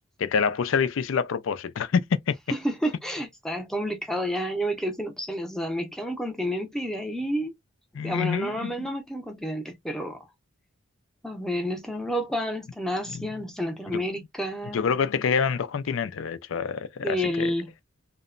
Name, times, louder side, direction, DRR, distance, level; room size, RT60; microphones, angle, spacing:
voice 1, 0.2-2.4 7.9-8.9 13.9-14.0 14.7-17.5, left 6 dB, 70° left, 0.4 m, -26 dB
voice 2, 2.5-7.5 8.0-10.3 11.2-14.9 17.0-17.7, equal, ahead, 0.6 m, -30 dB
2.8 x 2.1 x 2.4 m
head